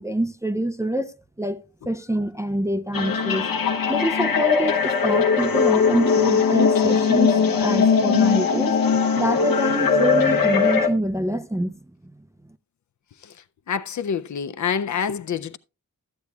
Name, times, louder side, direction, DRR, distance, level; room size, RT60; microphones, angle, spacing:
voice 1, 0.0-3.5 3.9-8.8 9.2-11.8, right 1 dB, 10° right, 0.3 m, -26 dB
sound 1, 2.9-10.9, left 5 dB, 85° left, 1.0 m, -20 dB
voice 2, 13.7-15.6, left 7 dB, 60° left, 0.5 m, -27 dB
13.5 x 8.3 x 2.3 m
wide cardioid pair, 130°, 33 cm